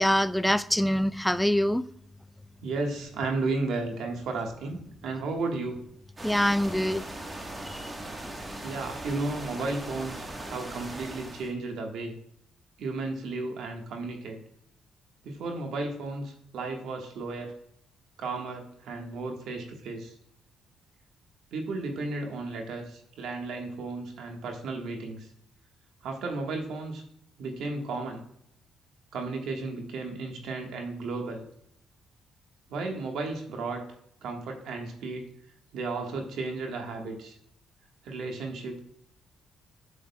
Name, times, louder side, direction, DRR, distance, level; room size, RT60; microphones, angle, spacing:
voice 1, 0.0-1.8 6.2-7.0 7.7-7.8, equal, 5° left, 0.4 m, -24 dB
voice 2, 2.6-5.8 8.6-12.2 12.8-14.4 15.2-17.5 18.2-20.1 21.5-25.3 26.0-27.0 27.4-28.2 29.1-31.4 32.7-33.8 34.2-35.3 35.7-37.3 38.0-38.8, right 3 dB, 80° right, 1.4 m, -34 dB
sound 1, 6.2-11.5, right 1 dB, 20° right, 1.2 m, -39 dB
8.1 x 7.7 x 2.2 m
cardioid pair, 90°, 0 cm